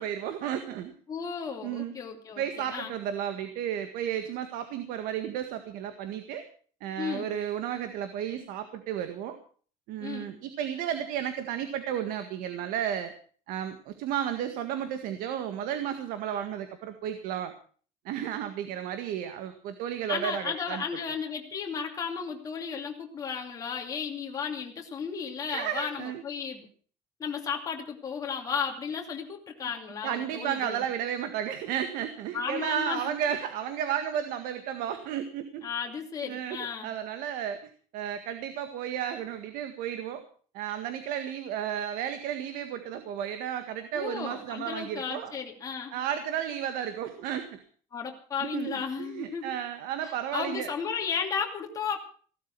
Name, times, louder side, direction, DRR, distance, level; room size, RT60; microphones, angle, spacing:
voice 1, 0.0-0.9 1.6-1.9 2.4-6.4 6.8-9.4 9.9-13.1 13.5-17.5 18.1-20.8 25.5-26.2 30.0-35.7 36.2-37.6 37.9-40.2 40.5-45.3 45.9-47.6 48.4-50.7, right 9 dB, 65° right, 9 dB, 1.8 m, -33 dB
voice 2, 1.1-2.9 7.0-7.3 10.0-10.3 20.1-26.7 27.2-30.8 32.3-33.1 35.6-36.9 43.9-45.9 47.9-49.5 50.0-52.0, left 6 dB, 25° left, 1 dB, 2.7 m, -34 dB
16.5 x 12.5 x 6.0 m, 0.43 s
cardioid pair, 175°, 15 cm